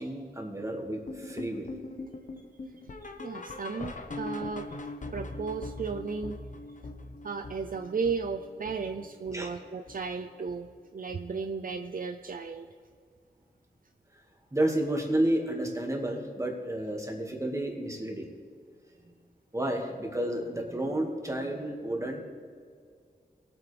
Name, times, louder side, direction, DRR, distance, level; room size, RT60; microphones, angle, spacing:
voice 1, 0.0-1.7 9.3-9.5 14.5-18.3 19.0-19.2 19.5-22.2, right 1 dB, 15° right, 1 dB, 2.0 m, -31 dB
sound 1, 1.1-10.2 10.5-10.8 11.1-11.2 11.7-11.8 12.3-12.4, left 2 dB, 50° left, 1.1 m, -42 dB
voice 2, 3.2-4.7 5.1-6.4 7.2-12.7, right 5 dB, 55° right, 7 dB, 0.5 m, -34 dB
20.5 x 8.8 x 3.4 m, 2.1 s
wide cardioid pair, 80°, 17 cm